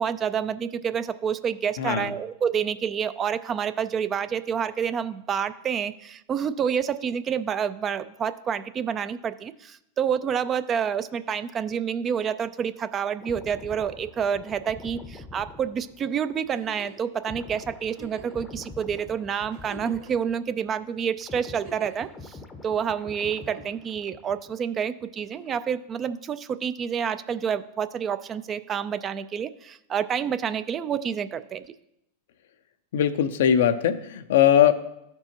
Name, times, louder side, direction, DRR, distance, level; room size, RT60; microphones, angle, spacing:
voice 1, 0.0-22.4 22.6-31.6, right 7 dB, 30° right, 13 dB, 0.3 m, -28 dB
voice 2, 1.8-2.1 32.9-34.7, left 10 dB, 70° left, 11 dB, 0.5 m, -20 dB
sound 1, 13.2-20.7 21.0-24.7 25.0-25.2, left 3 dB, 20° left, 0.6 m, -45 dB
Giggle, 16.5-17.1 17.9-18.4 19.0-19.1 19.5-20.3 21.4-22.1 23.2-23.9 25.2-25.6 27.1-27.2, right 3 dB, 55° right, 2.0 m, -46 dB
13.0 x 4.5 x 2.9 m, 0.81 s
hypercardioid pair, 105°, 0 cm